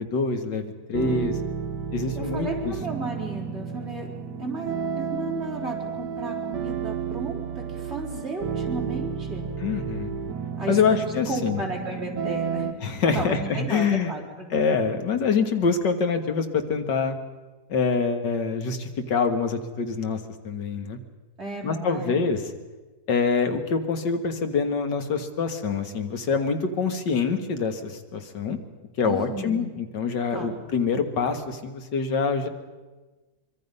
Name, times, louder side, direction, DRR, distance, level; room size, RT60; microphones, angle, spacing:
voice 1, 0.0-1.3 1.9-2.7 9.6-10.1 10.7-11.6 12.8-14.1 14.5-17.2 17.7-20.2 20.4-21.0 21.6-22.4 23.1-28.6 29.0-32.5, left 5 dB, 90° left, 7 dB, 2.2 m, -25 dB
sound 1, 0.9-12.7, right 6 dB, 80° right, 1.7 m, -32 dB
voice 2, 1.0-1.3 2.1-4.1 4.4-9.5 10.6-10.8 11.3-14.6 21.4-22.3 29.0-29.7 30.3-30.6, right 2 dB, 35° right, -2 dB, 4.7 m, -34 dB
24.5 x 24.0 x 5.5 m, 1.2 s
omnidirectional pair, 1.8 m